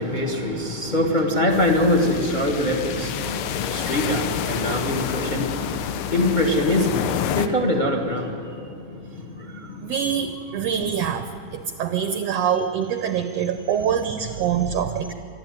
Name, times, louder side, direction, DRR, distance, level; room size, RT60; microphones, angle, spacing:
voice 1, 0.0-9.9, left 1 dB, 30° left, 3 dB, 0.9 m, -24 dB
sound 1, 1.5-7.5, left 9 dB, 90° left, 2.5 m, -29 dB
voice 2, 9.8-11.3 11.5-15.1, right 8 dB, 75° right, 8 dB, 1.5 m, -24 dB
24.0 x 13.0 x 9.3 m, 2.6 s
omnidirectional pair, 3.8 m